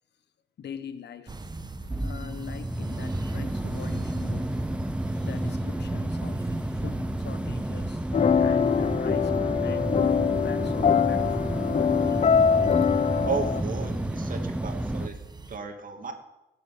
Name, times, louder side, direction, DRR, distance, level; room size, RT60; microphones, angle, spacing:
voice 1, 0.6-1.4 2.0-4.5 5.2-6.5 6.8-8.0 8.4-9.9 10.4-11.7 15.4-15.8, left 7 dB, 60° left, 1.4 m, -42 dB
sound 1, 1.3-15.1, right 1 dB, 5° right, 0.8 m, -30 dB
sound 2, 1.3-15.6, right 3 dB, 20° right, 1.3 m, -44 dB
sound 3, 8.1-13.6, left 7 dB, 35° left, 0.6 m, -23 dB
voice 2, 13.2-15.2 15.5-16.1, right 5 dB, 45° right, 2.7 m, -33 dB
17.5 x 7.7 x 7.9 m
cardioid pair, 90°, 20 cm